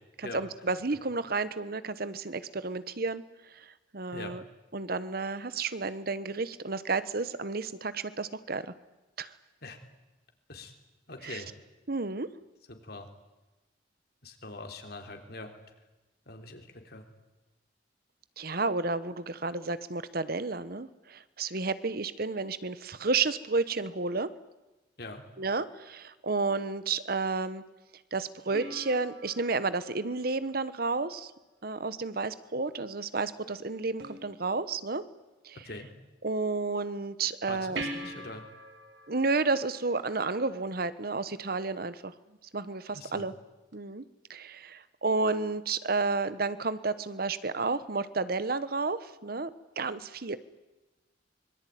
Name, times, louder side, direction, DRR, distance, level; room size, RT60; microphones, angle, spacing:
voice 1, 0.2-3.2 3.5-4.4 4.7-8.6 9.2-9.3 11.2-11.4 11.9-12.3 18.4-24.3 25.4-27.6 28.1-31.3 31.6-35.0 35.4-35.6 36.2-37.8 39.1-42.1 42.5-43.3 43.7-44.0 44.3-49.5 49.8-50.4, right 3 dB, 55° right, 14 dB, 1.1 m, -31 dB
voice 2, 11.1-11.5 12.7-13.1 14.2-15.5 16.3-17.0 25.0-25.2 35.6-35.9 37.5-38.5 42.9-43.3, left 2 dB, 60° left, 5 dB, 3.6 m, -43 dB
sound 1, 28.5-31.1 34.0-35.0 37.7-40.7 43.7-43.8, right 1 dB, 70° right, 3.0 m, -43 dB
25.0 x 22.0 x 9.4 m, 1.1 s
head